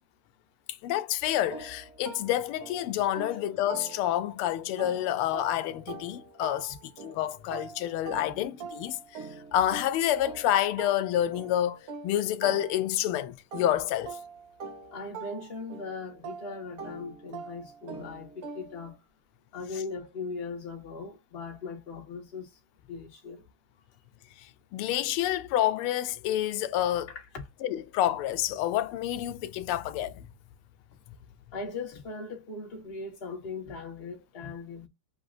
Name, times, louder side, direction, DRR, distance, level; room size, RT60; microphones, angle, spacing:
voice 1, 0.8-6.7 7.0-9.3 9.5-14.2 24.7-27.1 27.6-30.2, left 12 dB, 90° left, 1.5 m, -28 dB
sound 1, 1.5-4.4 4.8-13.1 13.5-18.9, right 5 dB, 65° right, 0.9 m, -44 dB
voice 2, 14.9-19.0 19.5-23.4 27.1-27.5 31.5-34.9, left 4 dB, 30° left, 1.4 m, -39 dB
6.3 x 2.7 x 2.5 m
omnidirectional pair, 2.3 m